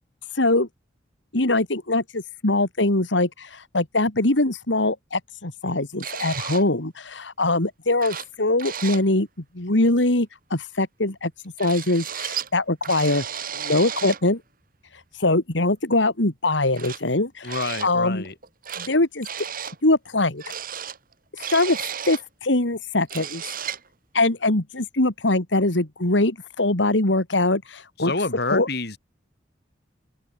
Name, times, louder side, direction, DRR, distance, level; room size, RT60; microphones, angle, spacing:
voice 1, 0.3-0.7 1.3-9.3 9.5-11.3 11.6-13.2 13.5-14.4 14.9-18.2 18.8-19.3 19.8-20.5 21.3-21.8 22.0-23.4 24.1-28.1 28.5-28.7, left 2 dB, 80° left, 2.6 m, -22 dB
sound 1, 6.0-6.7 7.7-7.8 8.0-8.3 8.6-9.1 11.6-12.5 12.8-14.2 15.7-15.8 16.8-17.0 17.4-17.9 18.2-18.9 19.2-19.8 20.4-22.3 22.7-22.8 23.0-23.9, right 8 dB, 50° right, 3.0 m, -33 dB
voice 2, 17.4-18.3 28.0-29.0, left 3 dB, 60° left, 4.1 m, -28 dB
open air
head